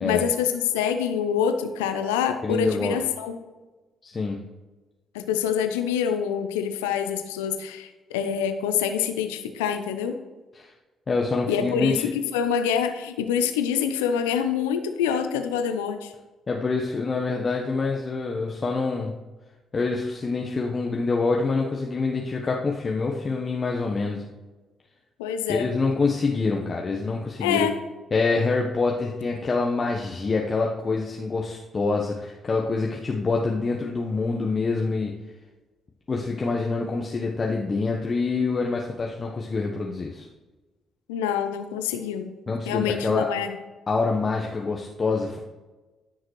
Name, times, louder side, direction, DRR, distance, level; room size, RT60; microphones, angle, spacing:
voice 1, 0.0-3.4 5.1-10.2 11.5-16.1 25.2-25.7 27.4-27.7 41.1-42.3 42.7-43.5, left 8 dB, 80° left, 8 dB, 0.7 m, -26 dB
voice 2, 2.4-3.0 4.0-4.4 10.6-10.7 11.1-12.1 16.5-19.1 19.7-24.2 25.5-27.7 28.1-35.1 36.1-40.3 42.5-43.3 43.9-45.4, left 4 dB, 40° left, -1 dB, 1.0 m, -26 dB
14.0 x 6.4 x 3.1 m, 1.2 s
hypercardioid pair, 45°, 0 cm